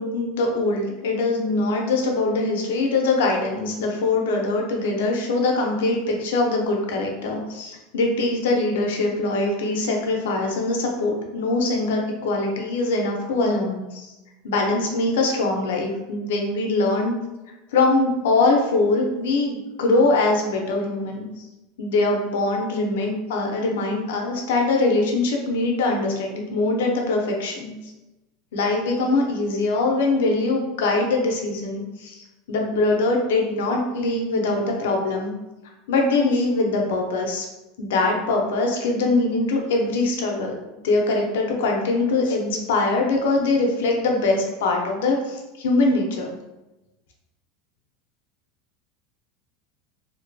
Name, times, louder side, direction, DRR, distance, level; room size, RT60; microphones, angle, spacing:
voice 1, 0.0-14.1 14.4-17.1 17.7-21.5 21.8-27.7 28.5-32.2 32.5-35.3 35.9-37.4 37.8-46.3, left 2 dB, 85° left, 0 dB, 0.6 m, -22 dB
2.6 x 2.2 x 2.6 m, 1.0 s
supercardioid pair, 180°, 0 cm